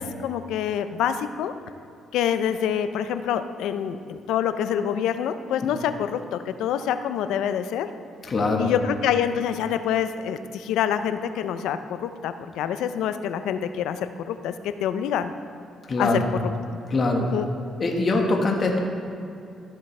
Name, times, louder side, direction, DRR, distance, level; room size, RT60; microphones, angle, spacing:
voice 1, 0.0-1.5 2.1-7.9 8.6-15.3 16.0-16.4 16.7-16.8 17.2-17.5, left 9 dB, 90° left, 11 dB, 0.4 m, -26 dB
voice 2, 8.3-8.7 15.9-16.2 16.9-17.3 17.8-18.8, left 2 dB, 40° left, 0 dB, 1.3 m, -22 dB
13.5 x 7.7 x 3.3 m, 2.7 s
cardioid pair, 90°, 0 cm